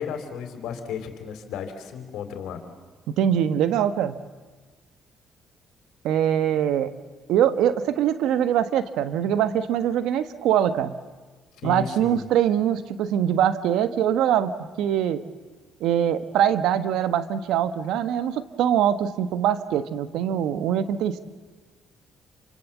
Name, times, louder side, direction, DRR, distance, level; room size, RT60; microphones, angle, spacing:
voice 1, 0.0-2.6 11.6-12.2, left 7 dB, 85° left, 7 dB, 3.6 m, -34 dB
voice 2, 3.1-4.1 6.0-6.9 7.3-10.9 11.6-15.2 15.8-21.2, right 10 dB, 90° right, 12 dB, 1.3 m, -23 dB
28.0 x 25.5 x 7.4 m, 1.4 s
cardioid pair, 90°, 0 cm